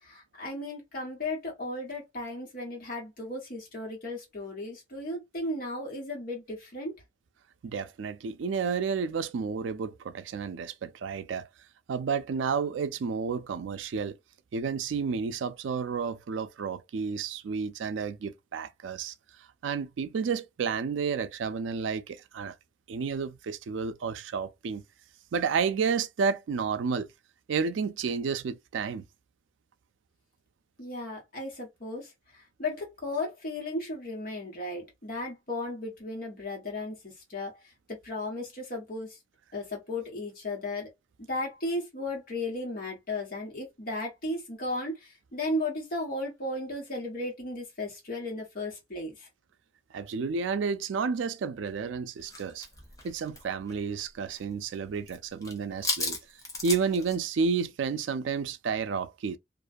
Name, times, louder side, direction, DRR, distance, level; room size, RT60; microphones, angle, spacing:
voice 1, 0.0-6.9 30.8-32.1 32.6-37.6 38.0-39.2 39.5-40.9 41.3-49.3, left 2 dB, 50° left, 1.3 m, -35 dB
voice 2, 7.6-11.5 11.9-14.2 14.5-19.1 19.6-22.5 22.9-24.8 25.3-27.1 27.5-29.1 49.9-52.7 53.0-56.2 56.6-59.4, right 5 dB, 90° right, 0.4 m, -31 dB
sound 1, 52.3-54.4 54.7-55.1 55.4-57.2, left 2 dB, 20° left, 0.7 m, -35 dB
2.5 x 2.2 x 2.5 m
head